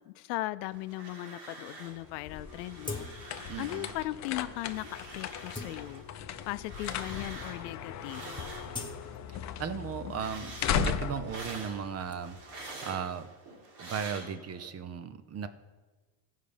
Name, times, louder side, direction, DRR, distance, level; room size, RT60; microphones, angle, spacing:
voice 1, 0.1-8.3, left 17 dB, 90° left, 15 dB, 0.6 m, -38 dB
sound 1, 0.7-2.1 2.3-4.1 4.4-9.2 9.5-14.7, right 2 dB, 55° right, 2.4 m, -47 dB
sound 2, 1.9-12.6, left 8 dB, 35° left, 0.6 m, -37 dB
sound 3, 2.8-3.5 3.9-4.0 4.7-4.8 5.3-6.4 7.1-7.2 7.4-7.8 8.1-9.9 10.2-12.1, left 3 dB, 10° left, 1.0 m, -44 dB
voice 2, 3.5-3.9 8.7-8.9 9.3-12.4 12.8-13.3 13.8-15.5, right 7 dB, 30° right, 12 dB, 0.6 m, -37 dB
14.0 x 5.5 x 5.1 m, 1.3 s
supercardioid pair, 115°, 48 cm